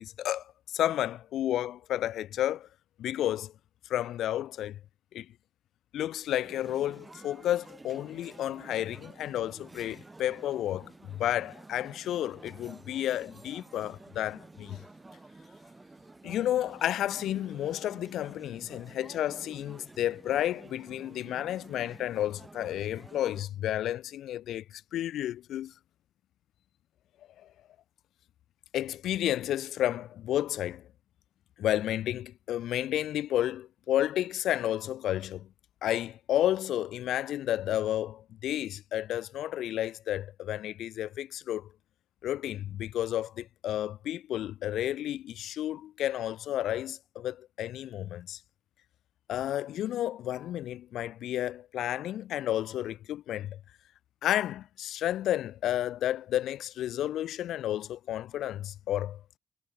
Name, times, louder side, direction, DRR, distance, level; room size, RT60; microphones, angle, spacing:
voice 1, 0.0-2.7 3.0-3.5 3.9-4.8 5.1-5.3 5.9-14.8 16.2-25.7 27.4-27.5 28.7-30.9 31.6-35.5 35.8-41.7 42.2-48.4 49.3-53.6 54.2-59.2, left 12 dB, 80° left, 0.6 m, -31 dB
sound 1, 6.4-23.4, right 2 dB, 20° right, 5.9 m, -51 dB
cardioid pair, 90°, 0 cm